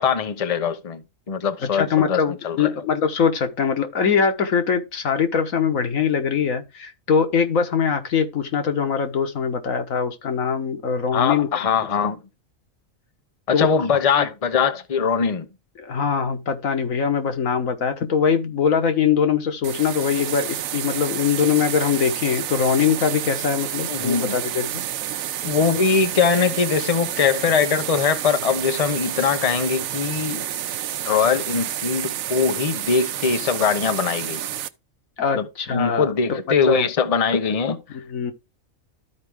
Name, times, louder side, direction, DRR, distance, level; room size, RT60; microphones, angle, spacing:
voice 1, 0.0-2.7 11.1-12.2 13.5-15.5 23.9-24.4 25.4-30.5 31.1-34.5 35.3-37.8, left 6 dB, 30° left, 0.8 m, -22 dB
voice 2, 1.7-11.5 13.5-13.7 14.2-14.3 15.8-24.8 35.2-36.4 36.7-36.9 37.9-38.3, left 6 dB, 85° left, 1.6 m, -22 dB
sound 1, 19.6-34.7, right 11 dB, 90° right, 1.0 m, -29 dB
13.0 x 4.6 x 3.5 m
omnidirectional pair, 1.4 m